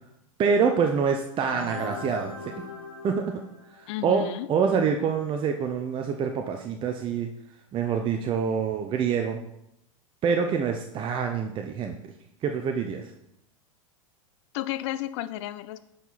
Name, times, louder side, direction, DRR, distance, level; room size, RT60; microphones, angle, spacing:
voice 1, 0.4-2.6 3.0-3.4 3.7-7.3 7.7-9.4 10.2-12.0 12.4-13.1, right 6 dB, 30° right, 4 dB, 0.7 m, -26 dB
sound 1, 1.4-4.1, left 3 dB, 80° left, 1.5 m, -40 dB
voice 2, 3.9-4.5 14.5-15.8, left 14 dB, 55° left, 14 dB, 0.5 m, -32 dB
9.9 x 4.8 x 4.1 m, 0.80 s
hypercardioid pair, 100°, 18 cm